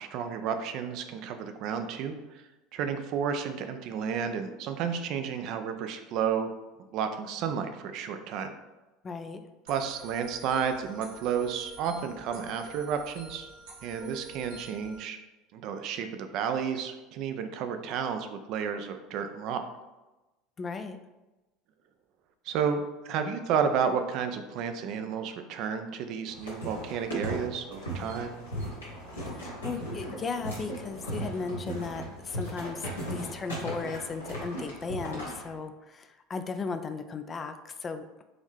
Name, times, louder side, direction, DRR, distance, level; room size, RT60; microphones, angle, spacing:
voice 1, 0.0-2.2 2.7-6.5 6.9-8.5 9.7-13.5 13.8-15.2 15.5-19.6 22.5-28.3, right 7 dB, 55° right, 7 dB, 0.4 m, -31 dB
voice 2, 9.0-9.5 20.6-21.0 29.3-38.2, left 4 dB, 30° left, 8 dB, 0.4 m, -36 dB
sound 1, 9.7-15.0, right 2 dB, 75° right, 1.2 m, -47 dB
sound 2, 26.3-35.5, right 1 dB, 85° left, 1.2 m, -37 dB
3.9 x 3.0 x 3.2 m, 1.1 s
figure-of-eight pair, 70°, 0 cm